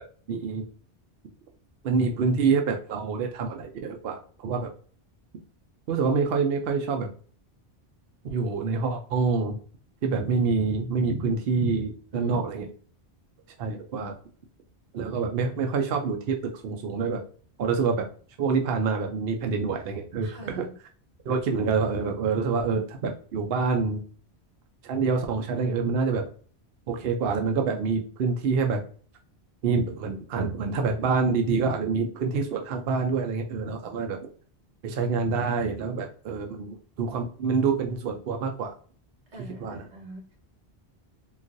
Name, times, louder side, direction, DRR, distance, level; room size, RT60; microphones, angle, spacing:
voice 1, 0.3-0.6 1.8-4.7 5.9-7.1 8.3-9.5 10.0-12.7 13.6-14.1 14.9-17.2 17.6-18.1 18.4-20.7 21.3-24.0 24.8-26.3 26.9-28.8 29.6-34.2 34.8-38.8 39.6-39.8, right 4 dB, 65° right, 4 dB, 0.7 m, -26 dB
voice 2, 12.1-12.5 20.2-20.7 39.3-40.4, equal, 85° right, 0 dB, 1.5 m, -42 dB
3.8 x 2.4 x 2.5 m, 0.43 s
omnidirectional pair, 1.1 m